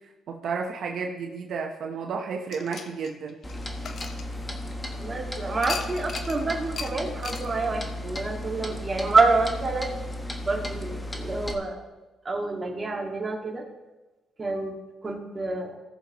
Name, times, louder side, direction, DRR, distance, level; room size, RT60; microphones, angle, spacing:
voice 1, 0.3-3.4, right 5 dB, 65° right, 1 dB, 1.0 m, -32 dB
sound 1, 2.5-4.9 5.6-6.4 6.8-6.9 7.2-7.5, left 5 dB, 55° left, 0.9 m, -37 dB
Clock, 3.4-11.5, left 1 dB, 15° left, 1.1 m, -35 dB
voice 2, 4.9-9.9 10.4-11.9 12.2-13.6 14.4-14.8 15.0-15.8, right 3 dB, 30° right, 0 dB, 2.0 m, -27 dB
17.5 x 6.8 x 3.0 m, 1.1 s
cardioid pair, 90°, 0 cm